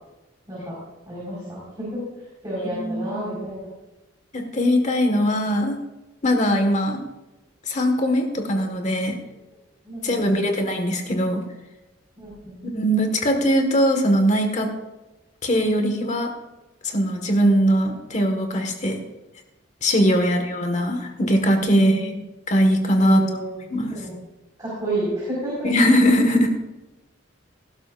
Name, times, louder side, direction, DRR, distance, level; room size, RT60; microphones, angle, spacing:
voice 1, 1.1-2.0 2.4-3.7 9.8-10.4 12.2-12.6 21.6-22.2 22.9-23.5 23.9-24.2 24.6-25.7, right 1 dB, 20° right, -8 dB, 4.8 m, -31 dB
voice 2, 2.7-3.4 4.3-5.8 6.2-7.0 7.7-9.1 10.0-11.4 12.7-14.7 15.4-16.3 16.8-19.0 19.8-22.2 22.5-23.2 23.7-23.9 25.6-26.5, equal, 40° left, 4 dB, 1.6 m, -20 dB
18.0 x 11.5 x 2.6 m, 1.1 s
head